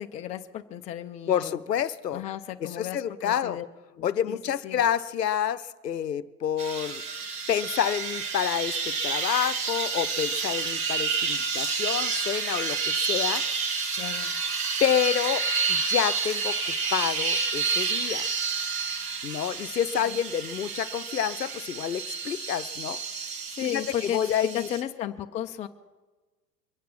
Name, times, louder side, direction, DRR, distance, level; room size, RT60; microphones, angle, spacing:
voice 1, 0.0-1.6 2.1-3.7 3.9-4.8 14.0-14.3 20.0-20.2 23.5-25.7, left 11 dB, 15° left, 6 dB, 0.5 m, -34 dB
voice 2, 1.3-2.2 2.6-3.6 4.0-7.0 7.5-13.4 14.8-18.3 19.2-23.0 23.6-24.7, left 9 dB, 85° left, 14 dB, 0.7 m, -28 dB
sound 1, 6.6-24.8, right 5 dB, 65° right, 1.9 m, -29 dB
23.5 x 8.4 x 6.0 m, 1.2 s
figure-of-eight pair, 95°, 48 cm